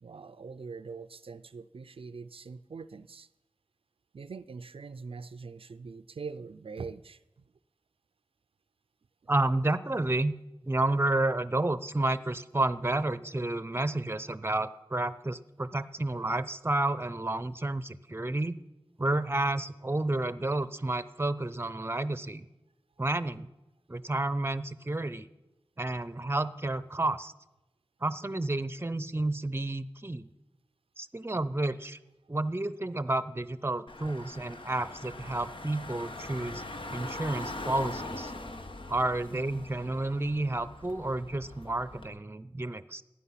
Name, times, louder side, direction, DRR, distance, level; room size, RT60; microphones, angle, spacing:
voice 1, 0.0-3.3 4.1-7.2, right 4 dB, 85° right, 13 dB, 0.4 m, -43 dB
voice 2, 9.3-10.3 10.7-18.6 19.0-22.5 23.0-23.5 23.9-25.3 25.8-27.3 28.0-30.3 31.0-32.0 32.3-36.6 36.9-38.3 38.9-43.0, right 2 dB, 25° right, 16 dB, 0.6 m, -30 dB
Car / Engine, 33.9-42.1, left 2 dB, 65° left, 1.1 m, -42 dB
15.5 x 10.0 x 5.7 m, 1.0 s
wide cardioid pair, 45°, 9 cm